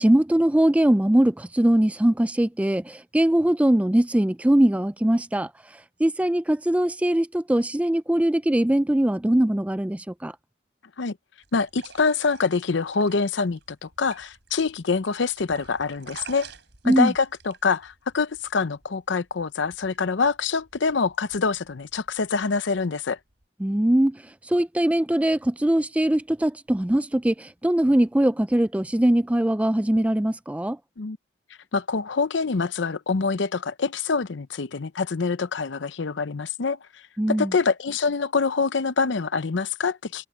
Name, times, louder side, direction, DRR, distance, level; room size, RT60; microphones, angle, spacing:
voice 1, 0.0-5.5 6.0-10.3 16.9-17.1 23.6-24.2 24.5-30.8 37.2-37.5, right 1 dB, 5° right, 0.3 m, -21 dB
sound 1, 11.4-23.4, right 5 dB, 70° right, 3.9 m, -50 dB
voice 2, 11.5-16.5 16.8-23.2 31.0-31.2 31.7-36.8 37.3-40.3, left 4 dB, 75° left, 0.7 m, -25 dB
head